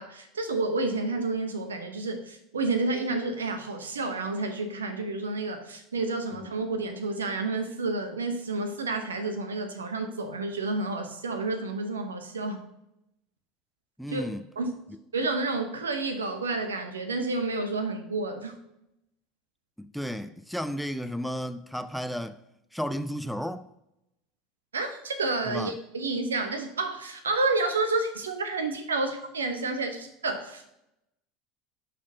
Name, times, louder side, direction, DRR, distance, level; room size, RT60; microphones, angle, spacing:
voice 1, 0.0-12.6 14.1-14.2 14.6-14.7 15.1-18.6 24.7-30.6, right 3 dB, 85° right, 0.8 m, -30 dB
voice 2, 14.0-14.5 19.8-22.4 22.7-23.7 25.5-25.8, equal, ahead, 0.4 m, -33 dB
11.5 x 4.2 x 2.8 m
hypercardioid pair, 80°, 0 cm